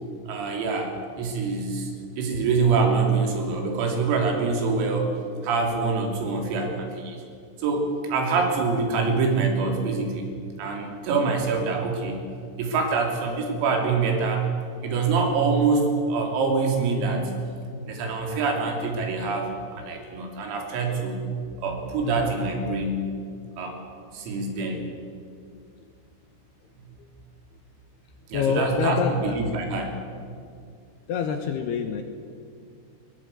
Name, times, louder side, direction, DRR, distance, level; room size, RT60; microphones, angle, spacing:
voice 1, 0.3-1.9 2.2-5.1 5.4-7.2 7.6-10.3 10.6-12.3 12.6-14.5 14.8-17.3 17.8-21.2 21.6-23.1 23.6-23.8 24.1-24.8 28.3-29.9, right 4 dB, 90° right, 2 dB, 5.7 m, -25 dB
voice 2, 28.3-29.4 31.1-32.0, left 7 dB, 70° left, 6 dB, 2.6 m, -26 dB
21.0 x 20.0 x 8.2 m, 2.3 s
omnidirectional pair, 5.9 m